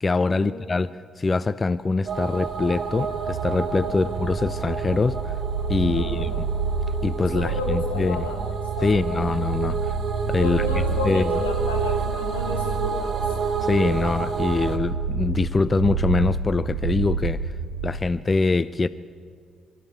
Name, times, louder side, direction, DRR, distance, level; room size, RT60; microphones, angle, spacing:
voice 1, 0.0-5.3 5.7-6.5 7.0-8.3 8.8-9.9 10.3-10.7 11.0-11.3 13.6-17.5 17.8-18.9, left 3 dB, 30° left, 16 dB, 0.5 m, -24 dB
sound 1, 2.1-14.8, right 5 dB, 45° right, 2.5 m, -30 dB
sound 2, 2.5-18.1, right 5 dB, 85° right, 1.6 m, -30 dB
voice 2, 5.8-6.5 7.2-8.4 8.8-9.3 10.3-13.4, left 3 dB, 85° left, 0 dB, 2.6 m, -32 dB
24.0 x 13.5 x 8.3 m, 2.2 s
figure-of-eight pair, 45°, 0 cm